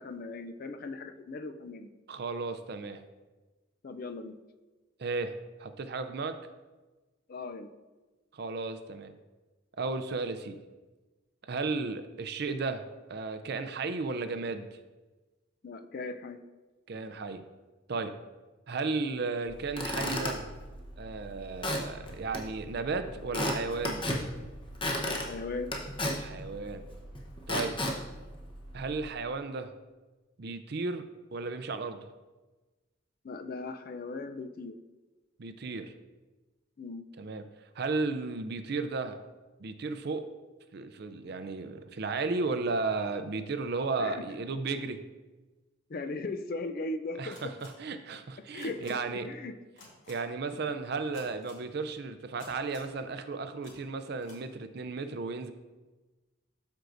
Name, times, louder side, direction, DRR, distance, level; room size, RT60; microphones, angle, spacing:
voice 1, 0.0-1.9 3.8-4.4 7.3-7.7 15.6-16.4 25.0-25.8 33.2-34.8 36.8-37.0 44.0-44.2 45.9-47.4 48.5-49.0 49.2-49.5, left 3 dB, 45° left, 8 dB, 0.4 m, -38 dB
voice 2, 2.1-3.0 5.0-5.3 5.6-6.4 8.3-9.2 9.8-10.6 11.5-14.7 16.9-17.4 17.9-18.1 18.7-20.5 21.0-24.1 26.2-26.8 27.5-27.8 28.7-29.7 30.4-31.0 31.3-32.1 35.4-35.9 37.2-37.5 37.8-39.2 39.6-40.3 40.7-45.0 47.2-49.3 50.1-55.5, right 3 dB, 50° right, 10 dB, 0.5 m, -34 dB
Squeak / Wood, 19.5-29.1, left 1 dB, 25° left, 0.9 m, -36 dB
sound 1, 47.3-47.7 48.6-48.9 49.8-50.1 51.1-51.6 52.4-52.9 53.6-53.7 54.2-54.4, left 3 dB, 65° left, 2.3 m, -52 dB
13.0 x 4.6 x 2.6 m, 1.2 s
head